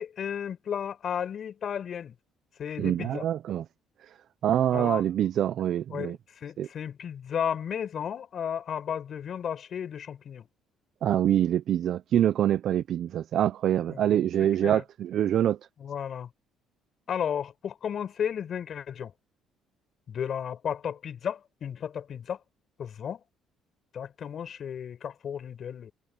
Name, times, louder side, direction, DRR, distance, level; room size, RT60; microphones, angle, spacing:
voice 1, 0.0-2.1 2.6-3.3 4.7-5.1 5.9-10.5 13.9-14.1 14.4-14.8 15.8-16.3 17.1-19.1 20.1-22.4 22.8-23.2 23.9-25.9, left 8 dB, 50° left, 5.2 m, -34 dB
voice 2, 2.8-3.6 4.4-6.2 6.6-6.7 11.0-15.6, right 11 dB, 60° right, 0.5 m, -25 dB
cardioid pair, 120°, 0 cm